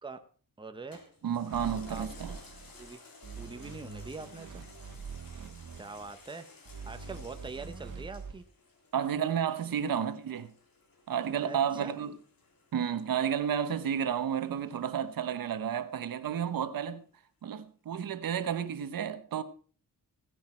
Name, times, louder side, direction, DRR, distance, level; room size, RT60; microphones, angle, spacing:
voice 1, 0.6-1.0 1.9-2.1 2.7-3.0 3.4-4.7 5.8-6.5 6.8-8.4 11.4-12.0, right 3 dB, 15° right, 1.0 m, -43 dB
Toilet flush, 0.9-15.7 16.2-16.3, left 3 dB, 85° left, 3.6 m, -56 dB
voice 2, 1.2-2.4 8.9-10.5 11.1-12.1 12.7-17.0 17.4-19.4, right 8 dB, 75° right, 1.1 m, -31 dB
sound 1, 1.5-2.9 3.2-6.1 6.7-8.4, right 5 dB, 60° right, 1.9 m, -44 dB
16.5 x 10.5 x 4.4 m
wide cardioid pair, 150°, 34 cm